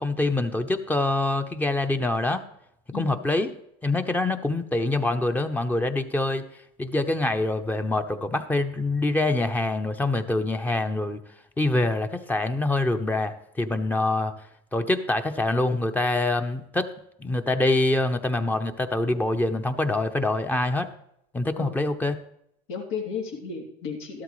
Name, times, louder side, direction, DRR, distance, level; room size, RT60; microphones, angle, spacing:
voice 1, 0.0-2.4 2.9-3.5 3.8-6.4 6.8-11.2 11.6-14.3 14.7-16.9 17.2-20.9 21.3-22.2, left 2 dB, 10° left, 8 dB, 0.8 m, -25 dB
voice 2, 2.9-3.2 21.6-21.8 22.7-24.2, left 6 dB, 85° left, 0 dB, 3.3 m, -34 dB
13.5 x 12.5 x 3.2 m, 0.75 s
supercardioid pair, 130°, 14 cm